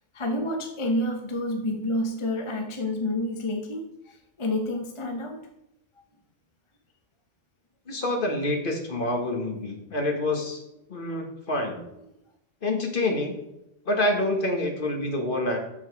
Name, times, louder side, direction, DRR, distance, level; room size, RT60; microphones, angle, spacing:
voice 1, 0.1-5.4, left 1 dB, 30° left, 3 dB, 0.7 m, -29 dB
voice 2, 7.9-10.6 10.9-11.8 12.6-13.3 13.8-15.6, left 1 dB, 45° left, 2 dB, 1.5 m, -27 dB
7.1 x 5.8 x 4.6 m, 0.88 s
omnidirectional pair, 1.3 m